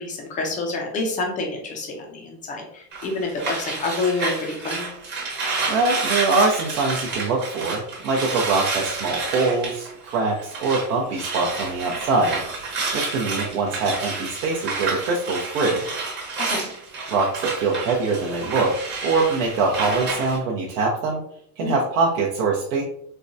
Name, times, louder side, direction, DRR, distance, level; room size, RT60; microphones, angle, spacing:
voice 1, 0.0-4.9 16.5-16.7 21.6-21.8, left 3 dB, 15° left, 1 dB, 0.5 m, -28 dB
sound 1, 2.9-10.9 11.1-20.4, right 3 dB, 20° right, 1.0 m, -29 dB
voice 2, 5.7-12.4 12.9-15.8 17.1-21.2 21.6-22.8, right 3 dB, 55° right, -3 dB, 0.8 m, -23 dB
4.5 x 2.2 x 2.6 m, 0.68 s
supercardioid pair, 150°, 48 cm